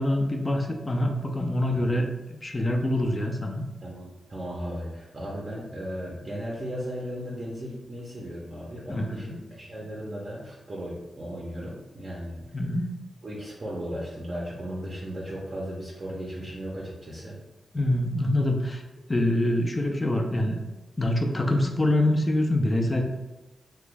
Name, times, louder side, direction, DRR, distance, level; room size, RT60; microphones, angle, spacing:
voice 1, 0.0-3.6 8.9-9.4 12.5-12.9 17.7-18.8 19.1-20.6 21.0-23.0, left 1 dB, 25° left, 3 dB, 0.4 m, -25 dB
voice 2, 3.8-12.6 13.2-17.4, equal, 40° right, -5 dB, 0.6 m, -36 dB
2.9 x 2.2 x 3.3 m, 1.0 s
cardioid pair, 85°, 0 cm